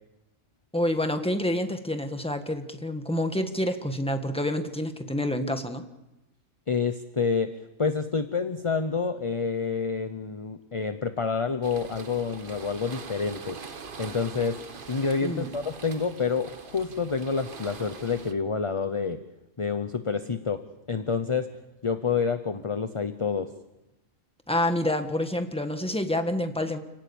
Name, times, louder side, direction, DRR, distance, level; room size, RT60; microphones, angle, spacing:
voice 1, 0.7-5.8 15.2-15.5 24.5-26.8, left 1 dB, 5° left, 7 dB, 1.5 m, -28 dB
voice 2, 6.7-7.5 7.8-13.6 14.0-14.6 14.9-19.2 19.6-20.6 20.9-21.5 21.8-23.5, left 5 dB, 25° left, 10 dB, 0.8 m, -28 dB
sound 1, 11.6-18.3, right 5 dB, 40° right, 1.2 m, -43 dB
29.5 x 18.5 x 7.1 m, 0.97 s
omnidirectional pair, 1.5 m